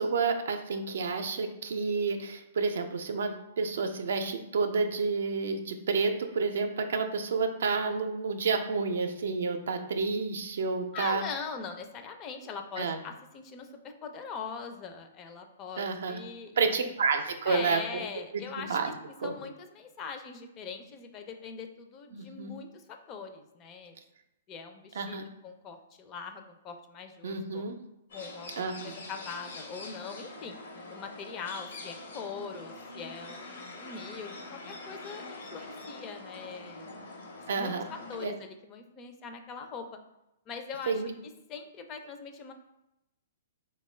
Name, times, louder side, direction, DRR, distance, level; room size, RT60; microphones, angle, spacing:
voice 1, 0.0-11.2 12.8-13.0 15.8-16.2 16.6-18.0 18.3-18.9 19.2-19.3 22.1-22.5 25.0-25.3 27.2-27.8 28.6-28.9 37.5-37.8 38.2-38.3 40.9-41.1, right 4 dB, 75° right, 6 dB, 0.4 m, -30 dB
voice 2, 10.9-16.7 17.5-18.8 19.1-23.9 24.5-27.6 28.1-30.6 30.9-36.9 37.5-39.9 40.5-41.0 41.5-42.5, left 5 dB, 30° left, 6 dB, 0.4 m, -42 dB
sound 1, 28.1-38.3, left 2 dB, 80° left, 0.9 m, -44 dB
3.6 x 2.2 x 3.2 m, 0.90 s
hypercardioid pair, 140°, 0 cm